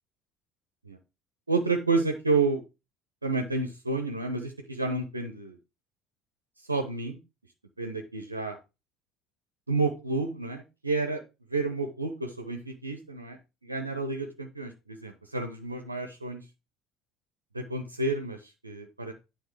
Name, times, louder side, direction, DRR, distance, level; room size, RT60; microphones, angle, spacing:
voice 1, 1.5-2.6 3.2-5.6 6.6-7.2 7.8-8.6 9.7-11.2 11.5-16.4 17.5-19.1, right 3 dB, 85° right, 5 dB, 0.8 m, -30 dB
9.4 x 3.6 x 4.7 m, 0.26 s
figure-of-eight pair, 60°, 0 cm